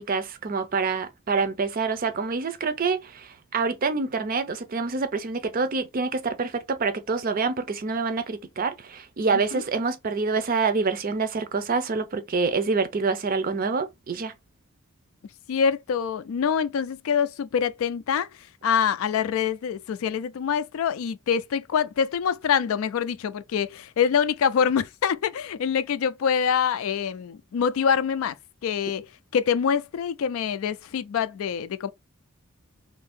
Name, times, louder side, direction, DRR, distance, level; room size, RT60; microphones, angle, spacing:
voice 1, 0.0-14.3, right 4 dB, 40° right, 0.5 m, -26 dB
voice 2, 15.5-18.3 18.6-28.3 28.6-29.1 29.3-31.9, left 7 dB, 70° left, 0.3 m, -25 dB
2.7 x 2.6 x 3.5 m
head